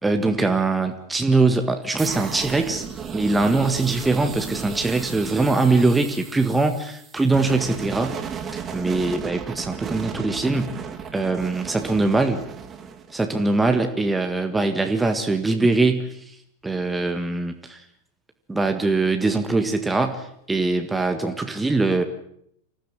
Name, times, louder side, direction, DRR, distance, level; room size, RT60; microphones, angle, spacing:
voice 1, 0.0-2.8 3.1-8.2 8.7-10.8 11.1-12.4 13.1-16.2 16.6-17.8 18.5-22.0, right 3 dB, 10° right, 6 dB, 1.8 m, -22 dB
sound 1, 2.0-13.8, right 7 dB, 25° right, 2.5 m, -35 dB
24.5 x 15.5 x 9.0 m, 0.71 s
figure-of-eight pair, 90°, 0 cm